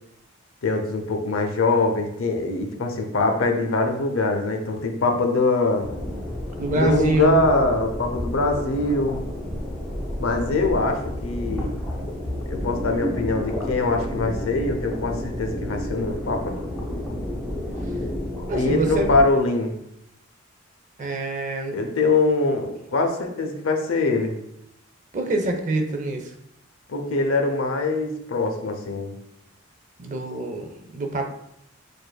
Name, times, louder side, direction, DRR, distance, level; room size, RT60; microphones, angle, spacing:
voice 1, 0.6-5.9 6.7-9.2 10.2-11.7 12.5-16.6 18.5-19.7 21.7-24.4 26.9-29.1, left 3 dB, 80° left, 4 dB, 0.7 m, -23 dB
sound 1, 5.8-19.2, left 1 dB, ahead, 0.8 m, -30 dB
voice 2, 6.6-7.4 18.5-19.1 21.0-21.8 25.1-26.3 30.0-31.2, right 2 dB, 40° right, 4 dB, 0.5 m, -25 dB
6.5 x 2.5 x 2.2 m, 0.77 s
head